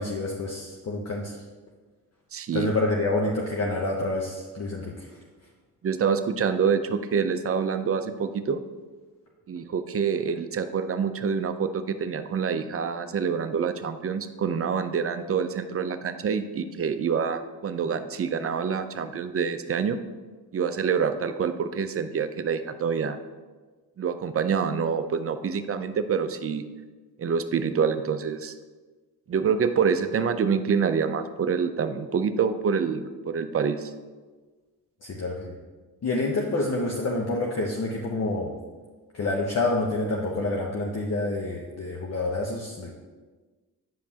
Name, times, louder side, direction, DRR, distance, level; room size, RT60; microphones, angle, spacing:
voice 1, 0.0-1.4 2.5-5.2 35.0-35.5 36.0-38.5 39.1-42.9, left 2 dB, 40° left, -1 dB, 0.9 m, -28 dB
voice 2, 2.3-2.7 5.8-8.6 9.5-20.0 20.5-23.2 24.0-26.6 27.2-28.5 29.3-33.9, right 6 dB, 35° right, 9 dB, 0.6 m, -26 dB
9.3 x 5.2 x 2.9 m, 1.3 s
cardioid pair, 75°, 39 cm